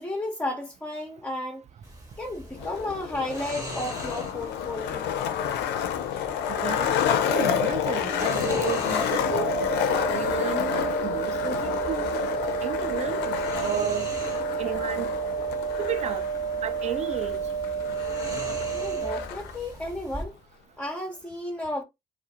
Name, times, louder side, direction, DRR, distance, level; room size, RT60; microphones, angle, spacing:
voice 1, 0.0-1.6 2.2-5.1 18.7-20.4 20.8-21.8, left 1 dB, 10° left, 0.7 m, -33 dB
sound 1, 1.8-20.2, right 1 dB, 20° right, 1.1 m, -42 dB
Skateboard, 2.5-19.6, left 9 dB, 70° left, 0.4 m, -29 dB
voice 2, 6.5-9.5 9.9-12.1 12.4-14.1 14.6-15.1 15.8-16.3 16.6-17.4, right 9 dB, 40° right, 0.4 m, -33 dB
sound 2, 9.2-19.2, right 6 dB, 80° right, 0.8 m, -30 dB
2.3 x 2.0 x 2.7 m
hypercardioid pair, 50°, 18 cm